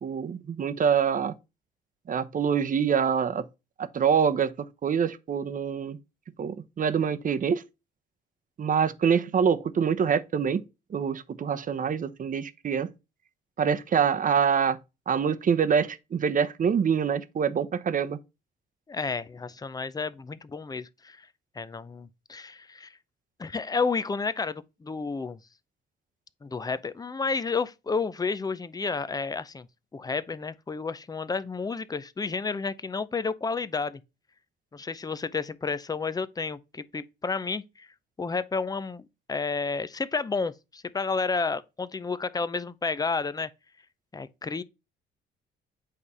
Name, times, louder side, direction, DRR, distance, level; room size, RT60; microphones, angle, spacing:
voice 1, 0.0-1.3 2.1-3.4 3.8-4.5 4.8-6.0 6.4-7.6 8.6-10.6 10.9-12.9 13.6-14.8 15.1-18.2, right 7 dB, 40° right, 0.8 m, -25 dB
voice 2, 18.9-21.3 21.6-23.0 23.4-25.4 26.4-29.7 29.9-34.0 34.7-37.9 38.2-43.5 44.1-44.6, left 4 dB, 20° left, 0.6 m, -31 dB
8.5 x 3.3 x 5.5 m
cardioid pair, 90°, 20 cm